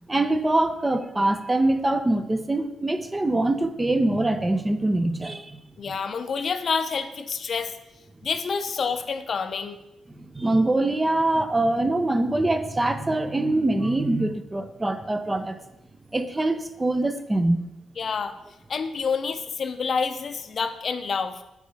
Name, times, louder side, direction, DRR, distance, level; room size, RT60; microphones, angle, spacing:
voice 1, 0.1-5.6 10.1-15.6 16.1-17.6, right 2 dB, 20° right, 9 dB, 0.6 m, -24 dB
voice 2, 5.8-7.8 8.2-9.8 18.0-18.4 18.7-21.4, left 5 dB, 50° left, 9 dB, 0.6 m, -28 dB
6.7 x 4.8 x 4.1 m, 0.93 s
cardioid pair, 90°, 0 cm